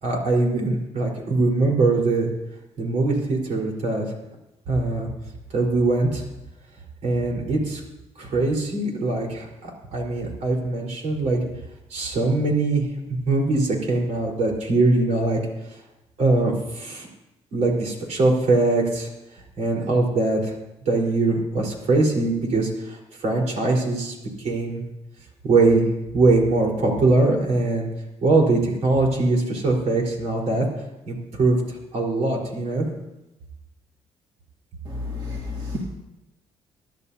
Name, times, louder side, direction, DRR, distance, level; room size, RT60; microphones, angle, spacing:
voice 1, 0.0-2.3 2.8-4.1 4.7-5.1 5.5-6.2 7.0-7.8 8.2-11.4 11.9-12.9 13.3-15.4 15.6-15.8 16.2-17.1 17.5-19.1 19.6-20.5 20.8-24.8 25.4-25.9 26.1-27.9 28.2-30.6 31.1-32.9, right 2 dB, 65° right, 0 dB, 4.3 m, -22 dB
voice 2, 34.9-35.8, left 2 dB, 40° right, -4 dB, 2.7 m, -31 dB
24.0 x 11.5 x 2.8 m, 0.94 s
cardioid pair, 105°, 13 cm